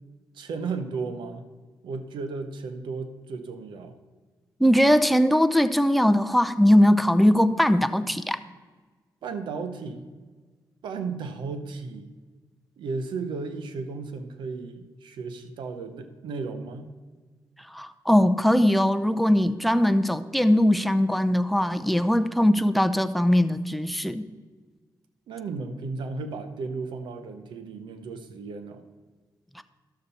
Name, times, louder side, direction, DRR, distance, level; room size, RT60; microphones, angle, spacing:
voice 1, 0.3-1.4 1.8-4.0 9.2-10.1 10.8-12.1 12.8-16.9 25.3-28.8, right 4 dB, 85° right, 9 dB, 0.8 m, -34 dB
voice 2, 4.6-8.4 17.7-24.3 29.6-29.7, equal, ahead, 10 dB, 0.6 m, -20 dB
11.5 x 6.7 x 4.2 m, 1.4 s
cardioid pair, 65°, 8 cm